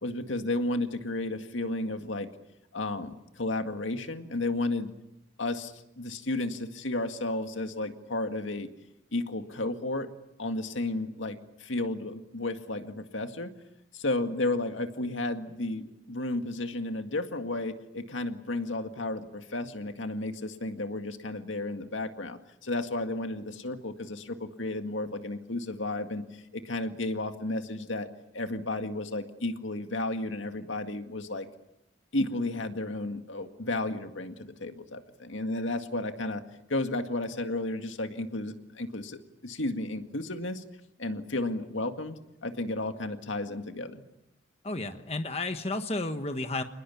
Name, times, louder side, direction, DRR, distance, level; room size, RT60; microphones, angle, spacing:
voice 1, 0.0-2.3 2.7-4.9 5.4-8.7 9.1-10.1 10.4-13.5 13.9-28.1 28.3-31.5 32.1-36.4 36.7-40.6 41.0-44.0, left 2 dB, 80° left, 7 dB, 2.0 m, -33 dB
voice 2, 44.6-46.6, left 2 dB, 30° left, 7 dB, 1.2 m, -32 dB
27.5 x 20.5 x 8.6 m, 0.88 s
head